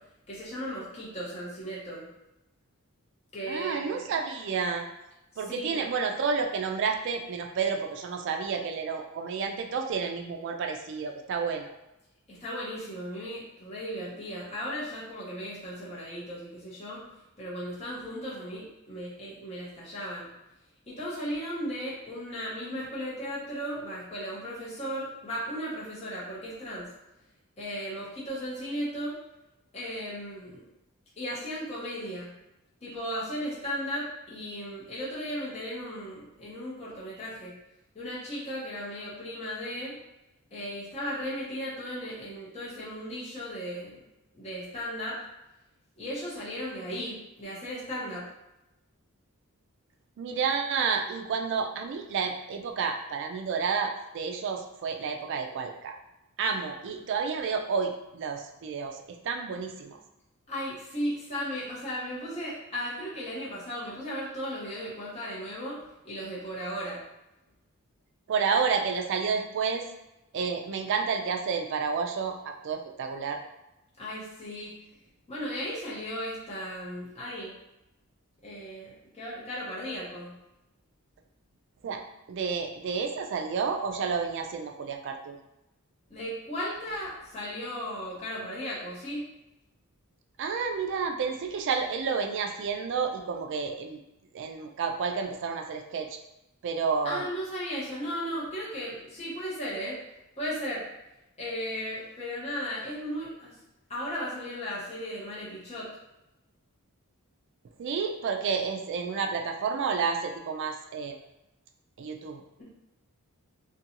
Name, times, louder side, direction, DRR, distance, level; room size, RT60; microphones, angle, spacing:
voice 1, 0.3-2.1 3.3-4.1 5.5-5.8 12.3-17.0 17.4-20.3 20.9-26.9 27.6-29.2 29.7-30.6 31.2-32.3 32.8-37.5 37.9-39.9 40.5-44.0 44.3-45.2 46.0-48.3 60.5-67.0 74.0-74.7 75.3-77.6 78.4-80.3 86.1-89.2 97.0-100.0 100.4-100.8 101.4-103.5 103.9-105.9 112.6-112.7, equal, 30° left, -7 dB, 0.7 m, -36 dB
voice 2, 3.5-4.9 5.4-11.7 50.2-55.9 56.4-59.0 59.2-60.0 68.3-69.8 70.3-73.4 81.8-82.0 82.3-85.4 90.4-94.0 94.3-96.1 96.6-97.3 107.8-111.2 112.0-112.4, right 5 dB, 55° right, 4 dB, 0.3 m, -30 dB
2.5 x 2.2 x 2.8 m, 0.92 s
head